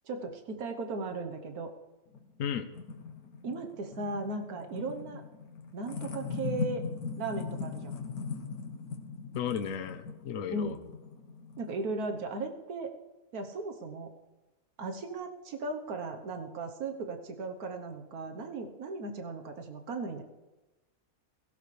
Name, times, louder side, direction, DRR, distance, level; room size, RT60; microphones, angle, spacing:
voice 1, 0.1-1.7 3.4-5.2 5.7-6.8 7.2-8.0 10.5-10.8 11.6-12.9 13.3-14.1 14.8-20.2, right 3 dB, 90° right, 5 dB, 1.7 m, -37 dB
sound 1, 2.1-12.2, left 5 dB, 85° left, 1.6 m, -40 dB
voice 2, 9.3-10.8, left 8 dB, 65° left, 8 dB, 1.2 m, -34 dB
16.5 x 16.0 x 3.3 m, 1.1 s
omnidirectional pair, 1.5 m